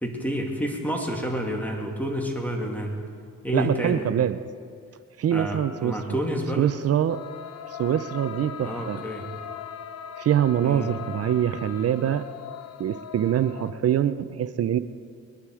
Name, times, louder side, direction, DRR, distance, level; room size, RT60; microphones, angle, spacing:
voice 1, 0.0-2.9 3.4-4.1 5.3-6.7 8.6-9.2 10.6-10.9, equal, 5° left, 1 dB, 2.6 m, -29 dB
voice 2, 3.5-4.4 5.2-6.0 6.6-7.2 7.7-9.0 10.2-12.2 12.8-14.8, right 10 dB, 55° right, 13 dB, 0.6 m, -24 dB
sound 1, 7.1-13.7, left 9 dB, 55° left, 0.9 m, -39 dB
21.0 x 11.5 x 4.9 m, 2.2 s
cardioid pair, 90°, 30 cm